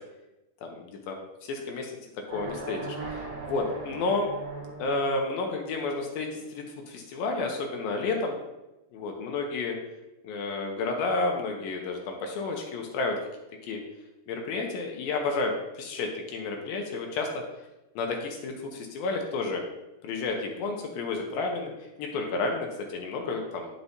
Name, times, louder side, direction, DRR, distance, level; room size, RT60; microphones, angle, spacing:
voice 1, 0.6-1.9 2.3-4.3 4.8-8.4 8.9-9.7 10.2-13.2 13.7-13.8 14.3-17.3 18.0-19.6 20.0-23.7, left 3 dB, 80° left, 2 dB, 2.6 m, -31 dB
sound 1, 2.3-5.2, right 3 dB, 85° right, 3.3 m, -38 dB
11.5 x 4.6 x 2.7 m, 0.97 s
omnidirectional pair, 4.2 m